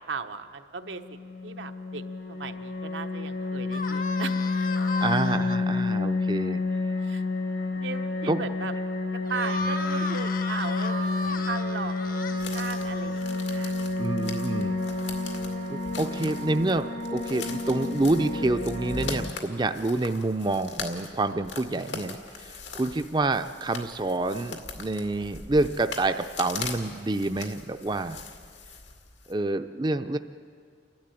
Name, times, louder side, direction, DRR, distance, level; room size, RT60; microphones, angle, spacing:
voice 1, 0.1-2.0 2.3-4.4 7.0-7.2 7.8-8.7 9.3-13.7, right 5 dB, 90° right, 6 dB, 1.1 m, -37 dB
sound 1, 0.8-19.3, left 3 dB, 70° left, 1.7 m, -30 dB
sound 2, 3.7-5.6 9.2-13.6, left 2 dB, 50° left, 0.9 m, -35 dB
voice 2, 5.0-6.6 8.3-8.4 14.0-14.8 15.7-28.2 29.3-30.2, right 2 dB, 25° right, 8 dB, 0.5 m, -28 dB
sound 3, 12.4-29.3, left 5 dB, 85° left, 2.2 m, -41 dB
29.5 x 12.0 x 9.1 m, 2.2 s
head